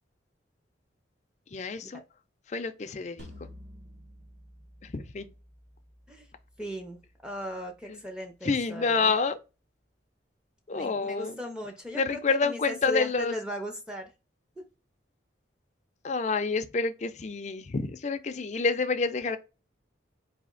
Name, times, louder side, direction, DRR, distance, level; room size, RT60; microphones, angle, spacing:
voice 1, 1.5-2.0 2.5-3.5 4.8-5.3 7.9-8.0 8.4-9.4 10.7-11.4 11.9-13.4 16.0-19.4, left 4 dB, 40° left, 0.5 m, -28 dB
sound 1, 3.2-8.3, left 1 dB, 60° right, 1.1 m, -52 dB
voice 2, 6.6-9.1 10.7-14.1, equal, 5° right, 0.6 m, -37 dB
4.1 x 2.8 x 3.8 m
head